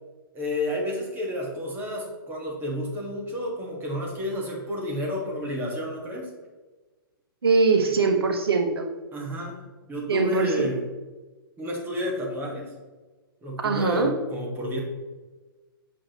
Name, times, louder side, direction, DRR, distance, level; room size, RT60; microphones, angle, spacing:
voice 1, 0.3-6.3 9.1-9.6 9.9-10.8 11.6-12.7 13.4-14.8, equal, 15° right, -2 dB, 1.6 m, -30 dB
voice 2, 7.4-8.9 10.1-10.8 13.6-14.1, right 4 dB, 90° right, 4 dB, 1.2 m, -22 dB
7.1 x 4.9 x 3.0 m, 1.2 s
hypercardioid pair, 140°, 13 cm